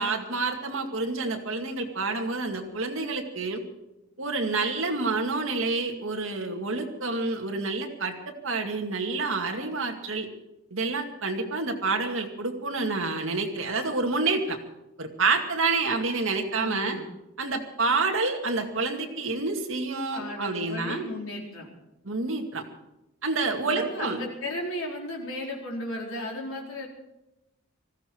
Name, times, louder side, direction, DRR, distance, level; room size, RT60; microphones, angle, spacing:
voice 1, 0.0-3.6 4.2-8.1 8.4-10.3 10.7-14.6 15.0-17.0 17.4-21.1 22.0-22.6 23.2-24.2, right 3 dB, 65° right, 2 dB, 2.3 m, -28 dB
voice 2, 16.5-17.1 20.1-21.7 23.6-26.9, left 1 dB, 70° left, -1 dB, 4.4 m, -35 dB
19.5 x 15.0 x 4.7 m, 0.93 s
head